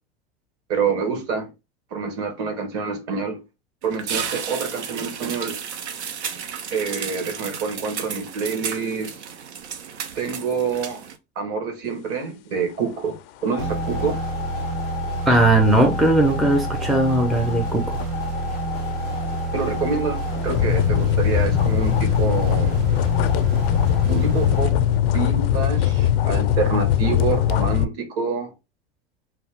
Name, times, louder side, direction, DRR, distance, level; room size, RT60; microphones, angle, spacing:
voice 1, 0.7-1.5 1.9-3.4 3.8-5.5 6.7-9.2 10.1-11.0 11.3-13.2 13.4-14.2 19.5-22.8 24.0-24.8 25.1-28.5, right 5 dB, 50° right, 1.2 m, -27 dB
sound 1, 3.8-11.2, right 7 dB, 85° right, 0.6 m, -33 dB
sound 2, 13.5-27.8, left 11 dB, 60° left, 0.4 m, -23 dB
sound 3, 13.6-25.3, right 3 dB, 65° right, 1.1 m, -29 dB
voice 2, 15.3-18.0, right 1 dB, ahead, 0.4 m, -18 dB
2.8 x 2.3 x 3.4 m
hypercardioid pair, 95°, 33 cm